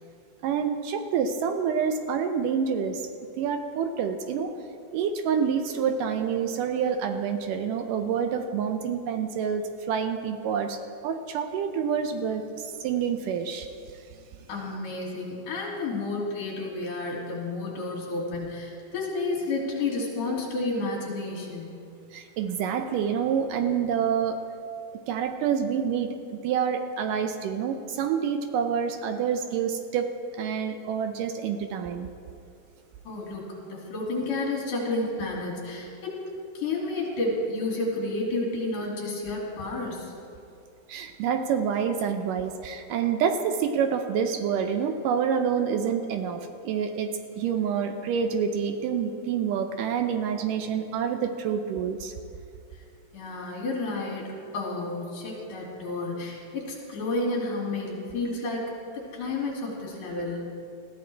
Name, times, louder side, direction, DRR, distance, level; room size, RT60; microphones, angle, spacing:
voice 1, 0.4-3.0 3.4-4.5 4.9-13.7 22.1-24.4 25.1-30.1 30.4-32.1 40.9-52.1, right 7 dB, 75° right, 7 dB, 2.1 m, -27 dB
voice 2, 14.5-21.8 33.1-36.2 36.5-40.1 53.1-60.5, left 2 dB, 60° left, -3 dB, 4.0 m, -31 dB
19.5 x 14.5 x 3.4 m, 2.5 s
omnidirectional pair, 4.2 m